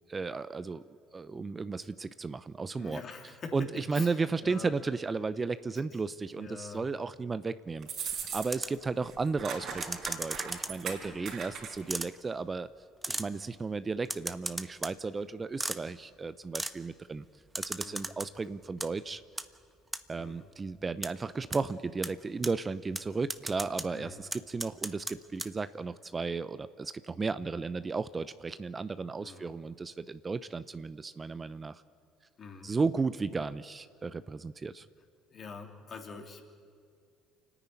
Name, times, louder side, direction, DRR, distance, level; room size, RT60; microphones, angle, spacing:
voice 1, 0.1-0.8 1.1-3.0 3.5-12.7 13.1-17.2 17.6-19.2 20.1-31.8 32.6-34.9, right 4 dB, 25° right, 14 dB, 0.6 m, -34 dB
voice 2, 2.8-4.7 5.7-6.0 6.3-6.9 8.0-8.3 11.0-11.4 13.1-13.4 17.8-18.2 20.2-20.5 23.9-24.2 29.2-29.5 32.4-32.7 35.3-36.7, left 5 dB, 45° left, 2 dB, 3.1 m, -46 dB
sound 1, 7.8-8.8 9.0-12.0, right 6 dB, 55° right, 4.7 m, -39 dB
sound 2, 8.5-8.8 9.8-10.9 11.9-12.1 13.0-13.3 14.1-15.0 15.6-15.8 16.5-16.7 17.5-18.3 18.6-18.9 19.4-19.5 19.9-20.0 21.0-21.1 21.5-21.6 22.0-22.1 22.4-22.5 23.0-23.1 23.3-23.9 24.3-25.1 25.4-25.5, right 1 dB, 10° right, 1.1 m, -35 dB
28.5 x 10.0 x 9.5 m, 2.2 s
hypercardioid pair, 60°, 0 cm